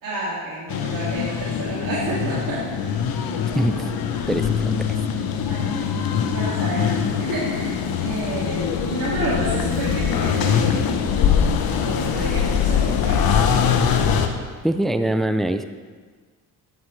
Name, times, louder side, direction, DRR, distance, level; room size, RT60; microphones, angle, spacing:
voice 1, 0.0-2.9 5.5-6.0 6.3-13.2, right 2 dB, 55° right, -8 dB, 2.5 m, -30 dB
sound 1, 0.7-14.3, left 7 dB, 65° left, 0.9 m, -22 dB
voice 2, 3.5-3.9 4.3-5.0 14.6-15.7, right 1 dB, ahead, 10 dB, 0.3 m, -23 dB
9.7 x 8.0 x 3.3 m, 1.5 s
supercardioid pair, 75°, 39 cm